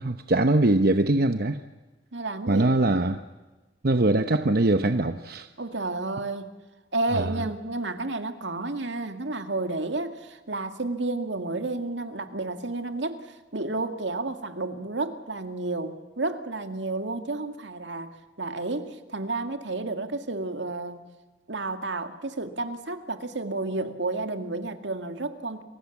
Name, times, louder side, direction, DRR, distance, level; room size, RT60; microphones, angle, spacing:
voice 1, 0.0-1.6 2.5-3.2 3.8-5.5 7.1-7.3, right 2 dB, 55° right, 9 dB, 0.9 m, -22 dB
voice 2, 2.1-2.7 5.6-6.6 6.9-18.1 18.4-21.0 21.5-25.6, right 2 dB, 80° right, 7 dB, 2.1 m, -31 dB
30.0 x 24.0 x 7.3 m, 1.2 s
head